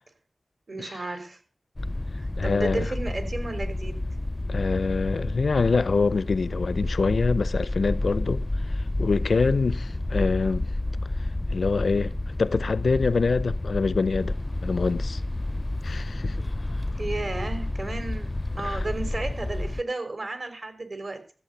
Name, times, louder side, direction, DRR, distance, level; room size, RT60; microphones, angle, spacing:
voice 1, 0.7-1.4 2.2-4.0 9.3-9.5 17.0-21.2, right 2 dB, 60° right, 3.9 m, -33 dB
sound 1, 1.8-19.8, left 2 dB, 30° left, 0.5 m, -30 dB
voice 2, 2.4-2.9 4.5-8.4 8.7-10.7 11.5-14.3 14.6-15.2 15.8-16.4 18.6-18.8, left 4 dB, 80° left, 0.6 m, -25 dB
14.0 x 8.1 x 6.8 m
cardioid pair, 45°, 0 cm